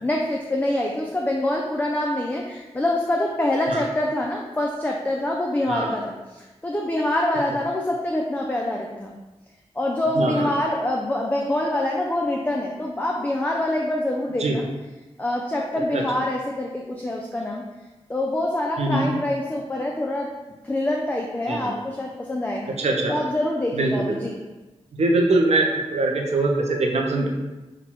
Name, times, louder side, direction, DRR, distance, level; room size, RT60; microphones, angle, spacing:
voice 1, 0.0-9.2 9.8-14.7 15.2-17.6 18.1-20.3 20.6-22.7 23.1-24.3, left 1 dB, 15° left, 0 dB, 0.4 m, -25 dB
voice 2, 10.2-10.5 14.4-14.6 18.8-19.1 21.5-21.7 22.8-23.1 23.8-23.9 24.9-27.3, right 2 dB, 80° right, 1 dB, 0.5 m, -22 dB
5.9 x 2.2 x 2.9 m, 1.1 s
wide cardioid pair, 110°, 11 cm